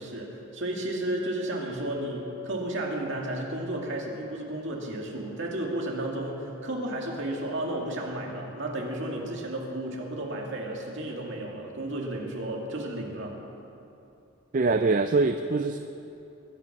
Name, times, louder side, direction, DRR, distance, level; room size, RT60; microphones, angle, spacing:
voice 1, 0.0-13.4, right 1 dB, 55° right, -1 dB, 2.3 m, -33 dB
voice 2, 14.5-15.8, right 3 dB, 35° right, 8 dB, 0.4 m, -23 dB
21.0 x 9.6 x 6.0 m, 2.8 s
head